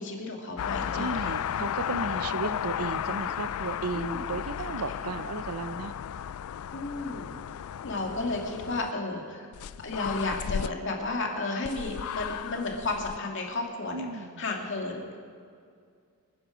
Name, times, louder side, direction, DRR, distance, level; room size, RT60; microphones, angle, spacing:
voice 1, 0.0-1.4 3.9-4.2 4.6-5.0 6.7-7.3 7.8-9.5 9.8-14.1 14.4-15.2, left 2 dB, 55° left, 1 dB, 2.4 m, -33 dB
sound 1, 0.6-8.9 9.5-10.7 11.6-13.2, left 9 dB, 85° left, 0.3 m, -34 dB
voice 2, 0.9-5.9 13.9-14.4, right 4 dB, 90° right, 14 dB, 0.6 m, -35 dB
27.0 x 9.9 x 5.1 m, 2.2 s
head